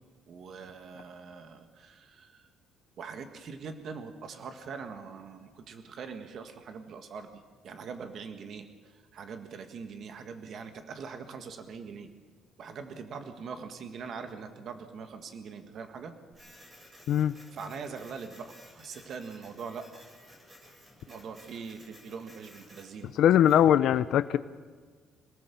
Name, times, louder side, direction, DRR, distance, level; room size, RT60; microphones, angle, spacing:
voice 1, 0.3-2.5 3.0-12.1 12.6-16.1 17.5-19.9 21.1-23.1, right 5 dB, 45° right, 7 dB, 1.7 m, -42 dB
Printer, 16.3-23.7, equal, 15° right, 6.9 m, -55 dB
voice 2, 23.2-24.4, left 10 dB, 60° left, 13 dB, 0.7 m, -21 dB
27.0 x 18.0 x 7.1 m, 1.5 s
cardioid pair, 175°, 0 cm